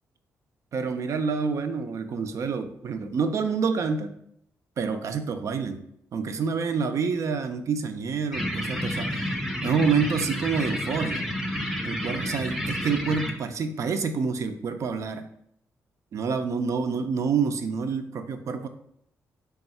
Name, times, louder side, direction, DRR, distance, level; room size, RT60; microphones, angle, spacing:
voice 1, 0.7-4.1 4.8-5.8 6.1-9.3 9.6-11.2 11.8-15.3 16.1-18.7, right 5 dB, 60° right, 9 dB, 0.4 m, -27 dB
sound 1, 8.3-13.3, equal, 5° right, 0.7 m, -30 dB
3.5 x 2.3 x 4.1 m, 0.71 s
cardioid pair, 85°, 6 cm